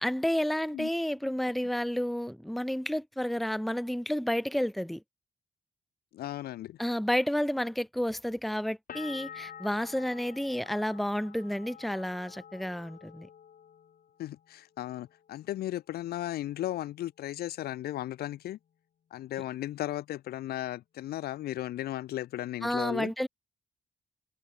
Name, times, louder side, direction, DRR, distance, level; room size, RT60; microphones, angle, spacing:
voice 1, 0.0-5.0 6.8-13.3 22.6-23.3, equal, ahead, 1.1 m, -31 dB
voice 2, 6.1-6.8 14.2-18.6 19.1-23.1, left 14 dB, 90° left, 4.8 m, -36 dB
sound 1, 8.9-14.5 14.8-15.6, left 8 dB, 65° left, 5.8 m, -49 dB
cardioid pair, 60°, 16 cm